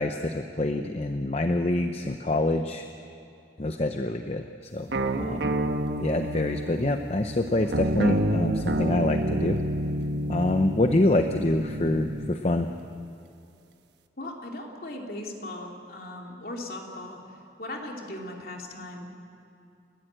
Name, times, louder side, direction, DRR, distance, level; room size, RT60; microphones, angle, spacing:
voice 1, 0.0-2.9 3.6-4.9 5.2-5.5 6.0-9.6 10.3-12.7, left 2 dB, 35° left, 6 dB, 0.7 m, -26 dB
sound 1, 4.9-12.4, right 1 dB, 80° right, 1.2 m, -29 dB
voice 2, 14.2-17.2 17.6-19.1, left 1 dB, 55° left, 0 dB, 3.0 m, -38 dB
29.5 x 12.5 x 8.9 m, 2.7 s
head